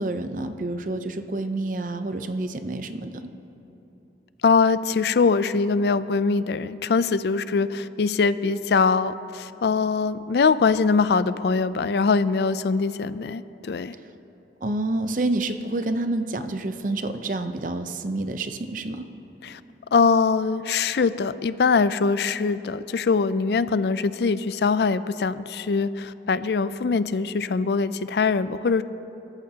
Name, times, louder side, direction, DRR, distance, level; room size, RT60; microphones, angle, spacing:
voice 1, 0.0-3.2 13.9-14.1 14.6-19.1, right 2 dB, 45° right, 8 dB, 0.7 m, -28 dB
voice 2, 4.4-13.9 19.4-19.6 19.9-28.8, left 4 dB, 65° left, 14 dB, 0.4 m, -22 dB
24.5 x 14.0 x 2.9 m, 3.0 s
head